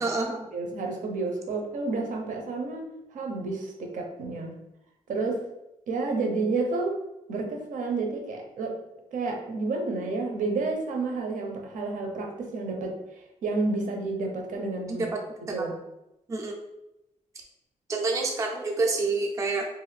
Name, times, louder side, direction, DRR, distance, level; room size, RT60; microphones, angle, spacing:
voice 1, 0.0-0.5 14.9-15.2 16.3-16.5 17.9-19.7, right 3 dB, 25° right, 1 dB, 0.4 m, -27 dB
voice 2, 0.5-4.6 5.1-5.5 5.9-7.0 7.3-8.8 9.1-13.0 13.4-15.1 15.4-15.8, right 3 dB, 80° right, 2 dB, 0.6 m, -30 dB
2.5 x 2.4 x 3.2 m, 0.90 s
wide cardioid pair, 155°, 13 cm